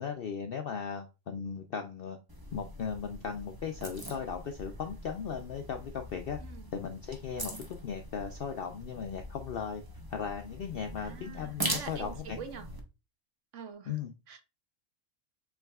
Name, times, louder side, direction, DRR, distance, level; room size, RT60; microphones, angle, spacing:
voice 1, 0.0-2.2 2.5-6.4 6.7-9.8 10.1-12.4 13.9-14.1, left 6 dB, 65° left, 0.5 m, -37 dB
sound 1, 2.3-12.8, right 1 dB, 20° right, 0.6 m, -42 dB
voice 2, 6.4-6.7 11.0-12.7 13.5-14.0 14.3-14.4, right 6 dB, 65° right, 1.0 m, -45 dB
7.0 x 3.3 x 2.3 m
omnidirectional pair, 1.5 m